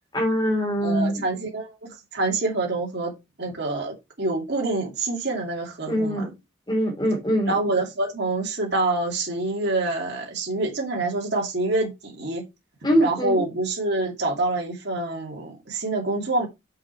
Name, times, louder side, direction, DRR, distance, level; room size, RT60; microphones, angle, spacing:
voice 1, 0.1-1.2 5.9-6.3 6.7-7.5 12.8-13.4, equal, 20° left, 2.9 m, -23 dB
voice 2, 0.8-3.1 3.4-6.3 7.5-12.4 13.0-16.5, right 2 dB, 55° right, 2.6 m, -26 dB
6.5 x 6.3 x 4.6 m
head